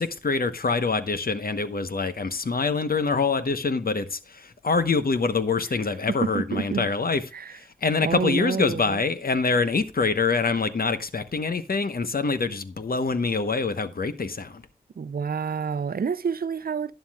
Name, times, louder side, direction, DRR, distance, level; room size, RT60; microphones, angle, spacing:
voice 1, 0.0-7.2 7.5-14.6, left 4 dB, 80° left, 1.0 m, -25 dB
voice 2, 6.2-6.9 7.3-7.6 8.0-9.0 15.0-16.9, right 6 dB, 85° right, 0.5 m, -28 dB
11.5 x 10.5 x 2.4 m
wide cardioid pair, 45°, 15 cm